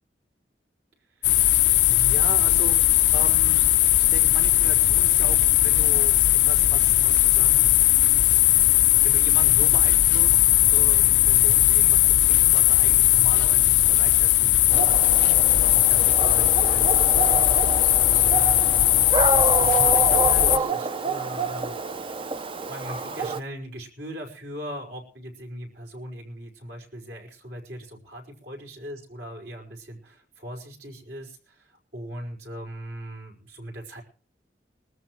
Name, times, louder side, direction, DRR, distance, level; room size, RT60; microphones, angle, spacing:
sound 1, 1.2-20.6, left 15 dB, 85° left, 0.6 m, -19 dB
voice 1, 1.8-3.7 4.0-7.8 9.0-10.4 10.7-14.9 15.7-17.5 18.0-18.6 19.3-21.8 22.7-34.0, right 1 dB, 70° right, 2 dB, 5.0 m, -38 dB
Dog, 14.7-23.4, right 5 dB, 30° right, 0.6 m, -28 dB
22.5 x 13.5 x 3.1 m, 0.39 s
head